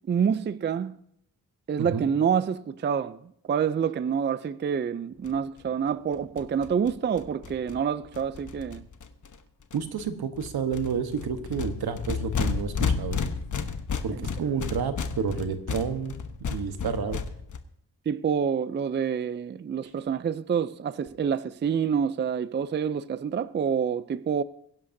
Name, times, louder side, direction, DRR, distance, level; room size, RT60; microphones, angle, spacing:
voice 1, 0.1-1.0 1.7-8.9 18.1-24.4, right 7 dB, 30° right, 0.4 m, -27 dB
sound 1, 5.2-5.3 5.6-5.7 5.9-6.0 6.1-9.4 9.7-10.1 10.4-17.6, left 5 dB, 55° left, 1.0 m, -32 dB
voice 2, 9.7-13.2 14.0-17.2, right 6 dB, 80° right, 1.2 m, -30 dB
22.5 x 11.0 x 2.7 m
wide cardioid pair, 115°, 37 cm